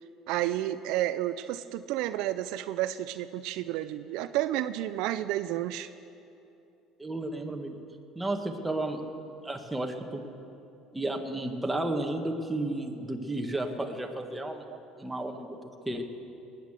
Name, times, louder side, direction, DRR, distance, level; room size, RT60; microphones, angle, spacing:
voice 1, 0.3-5.9, right 14 dB, 75° right, 12 dB, 0.4 m, -31 dB
voice 2, 7.0-7.7 8.2-9.0 9.4-10.2 10.9-14.6 15.0-15.6 15.9-16.1, right 2 dB, 10° right, 3 dB, 1.8 m, -32 dB
18.5 x 10.0 x 7.5 m, 2.8 s
supercardioid pair, 90°, 0 cm